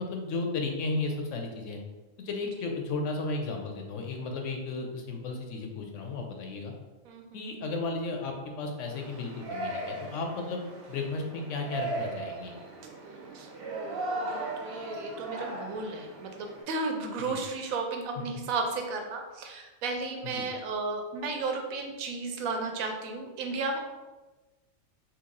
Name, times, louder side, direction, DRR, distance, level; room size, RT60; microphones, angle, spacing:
voice 1, 0.0-1.8 2.2-6.7 7.3-12.5 17.3-17.4 20.3-20.5, left 3 dB, 70° left, 2 dB, 0.9 m, -34 dB
voice 2, 7.0-7.5 13.3-23.8, right 3 dB, 85° right, 3 dB, 1.0 m, -34 dB
Yell, 8.9-16.6, right 2 dB, 55° right, 0.8 m, -37 dB
2.9 x 2.6 x 3.8 m, 1.2 s
omnidirectional pair, 1.4 m